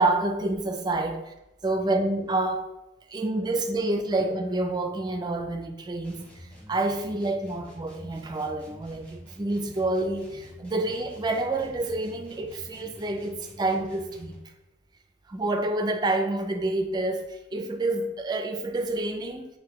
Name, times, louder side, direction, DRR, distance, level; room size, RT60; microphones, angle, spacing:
voice 1, 0.0-1.3 1.6-2.7 3.1-14.4 15.3-19.5, right 2 dB, 20° right, 5 dB, 0.3 m, -28 dB
sound 1, 6.0-14.5, equal, 5° left, 0.9 m, -48 dB
5.9 x 2.6 x 3.1 m, 0.97 s
head